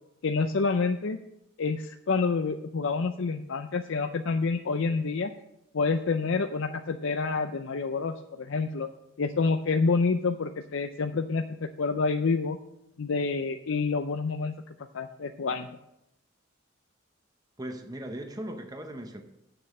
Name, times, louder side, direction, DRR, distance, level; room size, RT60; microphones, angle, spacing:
voice 1, 0.2-1.2 1.6-5.3 5.7-8.9 9.2-12.6 13.0-14.5 14.9-15.7, left 4 dB, 65° left, 0.5 m, -28 dB
voice 2, 17.6-19.2, right 1 dB, 20° right, 0.8 m, -38 dB
8.6 x 6.8 x 7.4 m
head